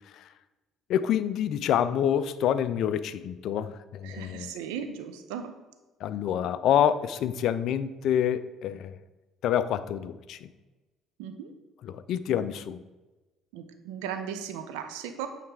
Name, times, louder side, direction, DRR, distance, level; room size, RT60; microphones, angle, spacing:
voice 1, 0.9-4.5 6.0-9.0 9.4-10.5 11.8-12.8, left 9 dB, 60° left, 14 dB, 0.3 m, -27 dB
voice 2, 4.0-5.5 11.2-11.5 13.5-15.3, right 8 dB, 70° right, 7 dB, 0.6 m, -37 dB
8.6 x 3.3 x 4.6 m, 1.2 s
hypercardioid pair, 55°, 0 cm